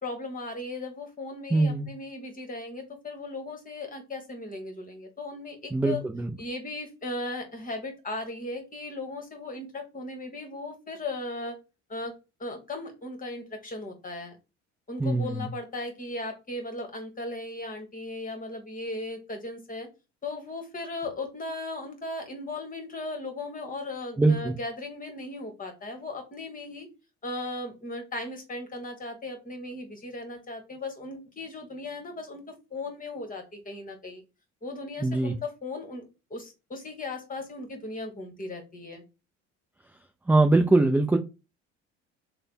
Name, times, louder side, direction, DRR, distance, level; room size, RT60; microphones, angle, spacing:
voice 1, 0.0-6.0 6.4-11.6 11.9-12.1 12.4-14.4 14.9-19.9 20.2-26.9 27.2-32.4 32.7-34.2 34.6-39.0, left 2 dB, 20° left, 1.4 m, -37 dB
voice 2, 1.5-1.9 5.7-6.3 15.0-15.5 24.2-24.5 35.0-35.3 40.3-41.2, right 2 dB, 5° right, 0.3 m, -22 dB
3.2 x 2.2 x 4.2 m
hypercardioid pair, 60°, 36 cm